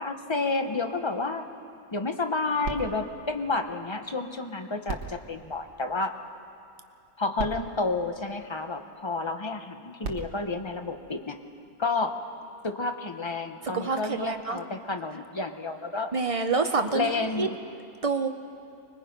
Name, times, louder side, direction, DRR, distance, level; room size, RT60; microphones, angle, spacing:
voice 1, 0.0-1.5 1.9-6.1 7.2-11.4 11.8-12.2 12.6-16.1 16.9-17.6, left 3 dB, 25° left, 6 dB, 0.6 m, -30 dB
sound 1, 2.6-4.3 4.8-6.4 7.1-7.2 7.4-8.9 9.8-11.6 12.3-12.4, right 4 dB, 75° right, 1.8 m, -41 dB
voice 2, 13.7-14.6 16.1-17.1 17.4-17.5 18.0-18.3, right 4 dB, 55° right, 6 dB, 0.3 m, -27 dB
25.0 x 20.5 x 5.2 m, 2.5 s
omnidirectional pair, 1.7 m